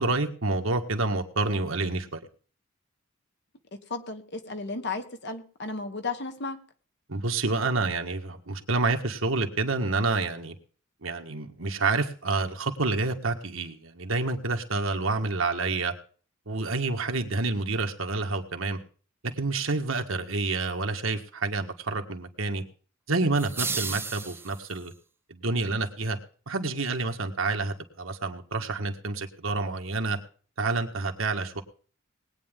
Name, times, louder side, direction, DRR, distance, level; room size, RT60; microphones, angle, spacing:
voice 1, 0.0-2.3 7.1-10.5 11.0-15.9 16.5-18.8 19.2-22.6 23.1-24.9 25.3-26.2 26.5-30.2 30.6-31.6, right 3 dB, 80° right, 4 dB, 1.6 m, -28 dB
voice 2, 3.9-6.6, left 3 dB, 60° left, 8 dB, 1.5 m, -34 dB
sound 1, 23.3-24.9, right 4 dB, 10° right, 0.6 m, -33 dB
20.0 x 9.1 x 3.7 m, 0.41 s
head